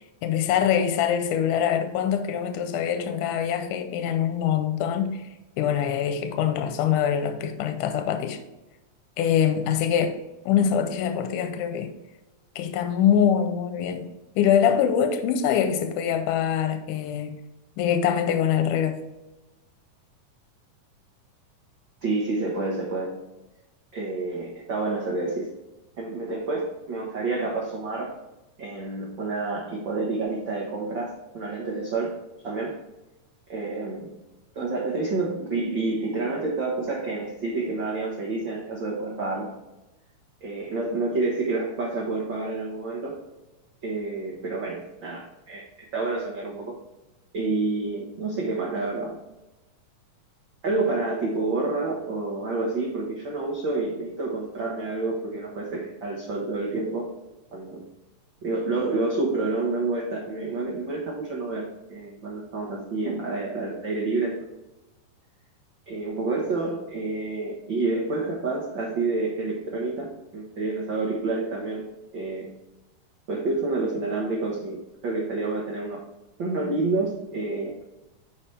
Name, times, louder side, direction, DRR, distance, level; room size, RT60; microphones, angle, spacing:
voice 1, 0.0-5.3 5.6-8.4 9.2-11.9 12.6-17.3 17.8-19.0, left 8 dB, 85° left, 2.2 m, -24 dB
voice 2, 22.0-23.2 23.9-25.5 26.0-28.1 28.6-32.2 32.4-32.7 33.5-34.1 34.5-39.5 40.4-43.1 43.8-45.7 45.9-46.7 47.3-49.2 50.6-57.1 57.5-57.8 58.4-64.5 65.9-71.8 72.1-72.5 73.3-76.0 76.4-77.8, right 3 dB, 55° right, 1.4 m, -28 dB
9.9 x 4.7 x 3.3 m
omnidirectional pair, 3.8 m